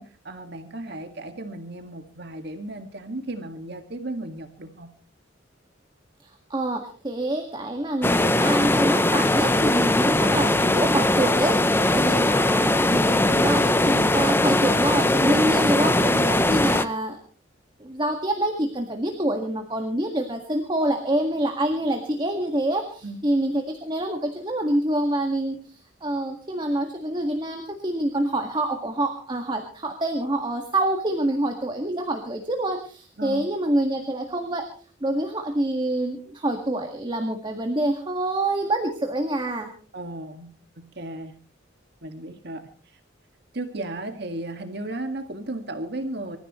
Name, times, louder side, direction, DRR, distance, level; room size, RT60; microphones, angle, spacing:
voice 1, 0.0-4.9 12.0-12.1 23.0-23.2 33.2-33.4 39.9-41.4 42.0-43.0 43.5-46.4, right 2 dB, 60° right, 6 dB, 2.0 m, -35 dB
voice 2, 6.2-17.2 17.8-34.7 35.0-39.7, right 1 dB, 25° right, 3 dB, 1.8 m, -26 dB
sound 1, 8.0-16.8, left 1 dB, 10° left, 0.7 m, -20 dB
26.0 x 14.5 x 3.1 m, 0.41 s
head